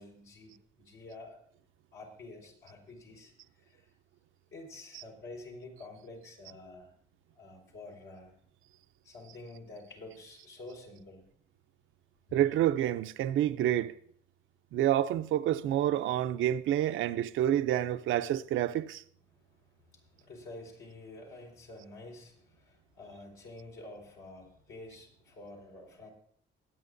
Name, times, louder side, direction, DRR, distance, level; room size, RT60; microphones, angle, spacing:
voice 1, 0.0-1.4 1.9-3.9 4.5-6.9 7.3-8.4 9.0-11.2 12.3-12.4 19.3-26.1, left 2 dB, 80° left, 4.7 m, -49 dB
voice 2, 12.3-14.0 14.7-19.0, right 12 dB, 80° right, 0.6 m, -28 dB
22.0 x 9.1 x 2.6 m
cardioid pair, 90°, 20 cm